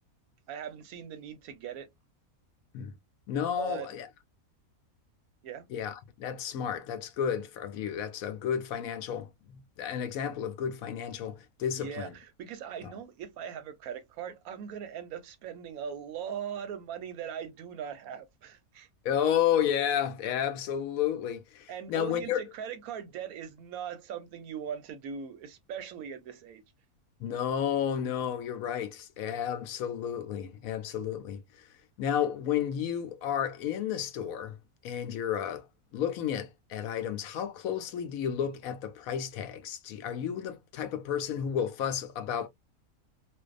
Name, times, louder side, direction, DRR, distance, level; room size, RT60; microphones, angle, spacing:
voice 1, 0.5-1.9 3.6-3.9 5.4-5.7 11.7-18.9 21.7-26.6, right 8 dB, 75° right, 1.0 m, -40 dB
voice 2, 3.3-4.1 5.7-12.1 12.8-12.9 19.0-22.4 27.2-31.7 32.0-34.6 34.8-35.7 35.9-42.5, left 9 dB, 75° left, 1.0 m, -32 dB
2.6 x 2.3 x 2.3 m
omnidirectional pair, 1.5 m